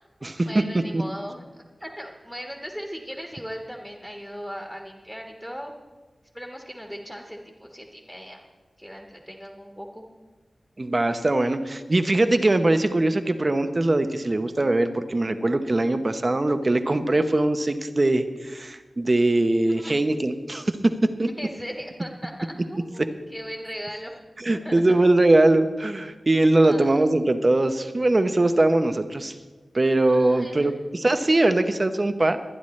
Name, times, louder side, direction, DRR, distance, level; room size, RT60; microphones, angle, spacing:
voice 1, 0.2-1.4 1.8-5.7 6.3-8.4 8.8-10.0 19.8-19.9 21.4-24.1 24.6-25.0 26.7-26.9 30.1-30.7, equal, ahead, 0 dB, 1.5 m, -38 dB
voice 2, 10.8-21.3 24.4-29.4 29.7-32.4, right 2 dB, 35° right, 9 dB, 0.9 m, -21 dB
23.0 x 10.0 x 3.2 m, 1.3 s
wide cardioid pair, 105°, 0 cm